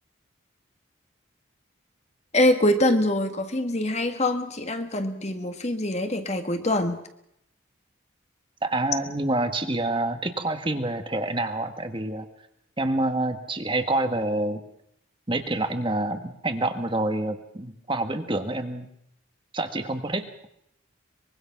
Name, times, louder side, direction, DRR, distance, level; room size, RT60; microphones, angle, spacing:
voice 1, 2.3-7.0, left 1 dB, 35° left, 7 dB, 1.7 m, -24 dB
voice 2, 8.6-12.3 12.8-14.6 15.3-18.9 19.5-20.3, right 2 dB, 25° right, 7 dB, 1.5 m, -27 dB
24.0 x 22.5 x 5.9 m, 0.76 s
head